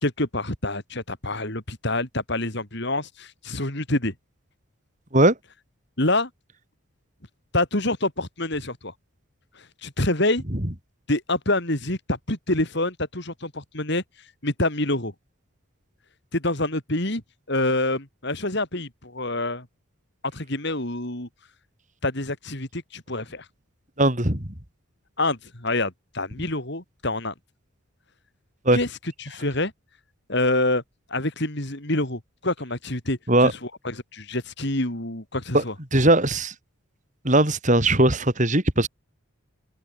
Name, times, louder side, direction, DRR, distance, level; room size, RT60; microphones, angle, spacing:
voice 1, 0.0-4.1 6.0-6.3 7.5-8.9 9.8-10.4 11.1-14.0 14.4-15.1 16.3-17.2 17.5-19.7 20.3-21.3 22.0-23.4 25.2-27.3 28.7-28.9 29.2-29.7 30.3-30.8 31.1-35.7, left 2 dB, 50° left, 4.0 m, -26 dB
voice 2, 24.0-24.5 28.7-28.8 33.3-33.5 35.5-35.6 35.9-36.5 37.2-38.9, right 1 dB, 35° right, 4.5 m, -19 dB
open air
head